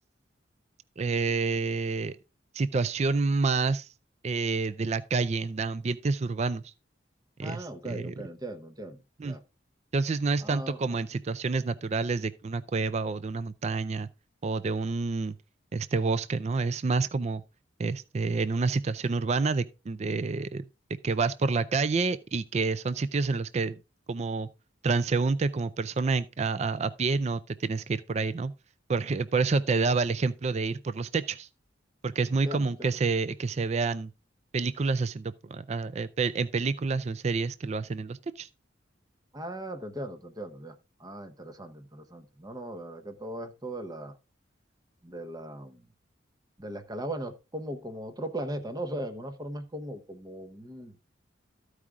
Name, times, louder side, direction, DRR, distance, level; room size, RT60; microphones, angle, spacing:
voice 1, 1.0-2.2 2.5-3.9 4.2-6.6 7.4-8.1 9.2-9.4 9.9-14.1 14.4-15.4 15.7-17.4 17.8-20.6 21.0-23.8 24.1-24.5 24.8-28.5 28.9-31.5 32.0-34.1 34.5-38.5, right 4 dB, 35° right, 0.4 m, -28 dB
voice 2, 7.4-9.4 10.4-10.8 32.4-32.9 39.3-40.7 41.0-44.1 45.0-45.8 46.6-50.9, right 1 dB, 20° right, 0.9 m, -38 dB
14.0 x 4.9 x 3.6 m
head